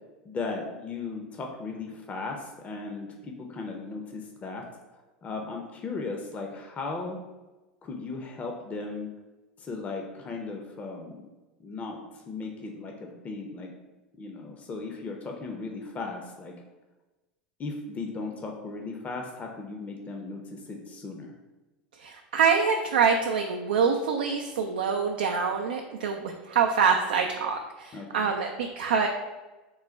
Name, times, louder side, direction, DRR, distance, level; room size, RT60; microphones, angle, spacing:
voice 1, 0.2-4.7 5.2-7.2 7.8-9.1 9.6-11.2 11.6-13.7 14.2-16.5 17.6-21.4 27.9-28.3, left 3 dB, 30° left, 2 dB, 0.6 m, -37 dB
voice 2, 22.0-29.1, right 6 dB, 80° right, 2 dB, 0.4 m, -25 dB
3.8 x 2.2 x 4.3 m, 1.1 s
hypercardioid pair, 90°, 5 cm